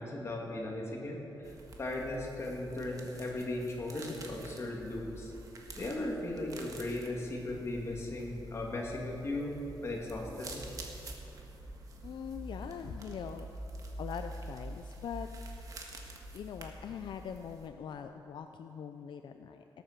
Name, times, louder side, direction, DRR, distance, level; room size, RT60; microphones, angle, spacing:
voice 1, 0.0-5.3 5.8-9.5 9.8-10.6, left 2 dB, 35° left, -1 dB, 2.5 m, -37 dB
sound 1, 1.4-17.7, right 1 dB, 45° right, 1.6 m, -47 dB
voice 2, 12.0-13.5 14.0-15.3 16.3-19.8, left 8 dB, 70° left, 7 dB, 0.5 m, -42 dB
18.0 x 8.7 x 6.8 m, 2.8 s
wide cardioid pair, 165°, 8 cm